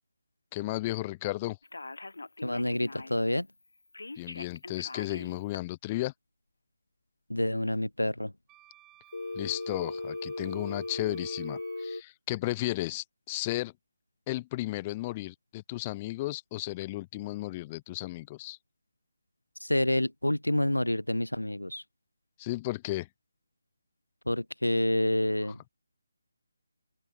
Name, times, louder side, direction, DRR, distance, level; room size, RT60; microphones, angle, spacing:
voice 1, 0.5-1.6 4.2-6.1 9.3-13.7 14.3-18.6 22.4-23.1, left 18 dB, 20° left, 1.3 m, -34 dB
Telephone, 1.6-3.3 3.9-5.6 9.1-12.0, left 2 dB, 65° left, 0.8 m, -38 dB
voice 2, 2.4-3.5 7.3-8.3 19.6-21.8 24.3-25.7, left 1 dB, 80° left, 0.3 m, -28 dB
Wind instrument woodwind instrument, 8.5-11.9, right 16 dB, 10° right, 2.6 m, -58 dB
open air
figure-of-eight pair, 150°, 0 cm